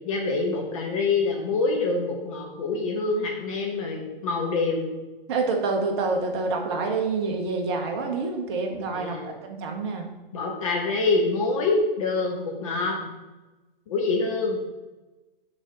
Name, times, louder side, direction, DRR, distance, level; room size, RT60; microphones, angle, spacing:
voice 1, 0.0-4.9 8.9-9.3 10.3-13.2 13.9-14.6, left 3 dB, 35° left, 0 dB, 1.0 m, -26 dB
voice 2, 5.3-10.0, right 3 dB, 25° right, 3 dB, 0.8 m, -27 dB
6.3 x 3.9 x 5.0 m, 1.1 s
figure-of-eight pair, 130°, 29 cm